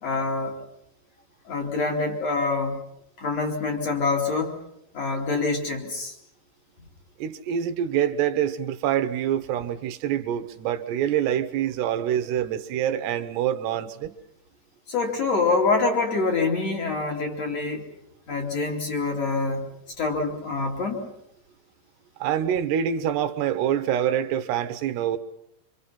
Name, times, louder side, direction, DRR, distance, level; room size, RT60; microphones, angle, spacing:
voice 1, 0.0-0.6 1.5-2.8 3.2-4.6 4.9-6.1 14.9-17.9 18.3-19.7 20.0-21.1, left 3 dB, 40° left, 3.5 m, -25 dB
voice 2, 7.2-14.1 22.2-25.2, right 10 dB, 75° right, 3.1 m, -26 dB
26.5 x 25.5 x 5.7 m
omnidirectional pair, 5.0 m